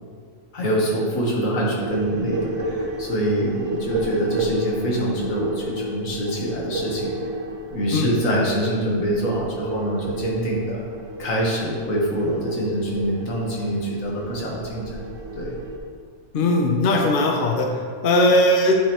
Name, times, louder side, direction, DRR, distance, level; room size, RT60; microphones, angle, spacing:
voice 1, 0.5-7.1 7.7-10.8 11.2-15.0 15.4-15.5, right 1 dB, 70° left, -3 dB, 1.6 m, -25 dB
sound 1, 1.8-15.8, right 1 dB, 70° right, 1.1 m, -32 dB
voice 2, 16.3-17.7 18.0-18.7, left 1 dB, 50° left, 2 dB, 0.7 m, -18 dB
8.7 x 5.0 x 2.9 m, 2.1 s
omnidirectional pair, 1.5 m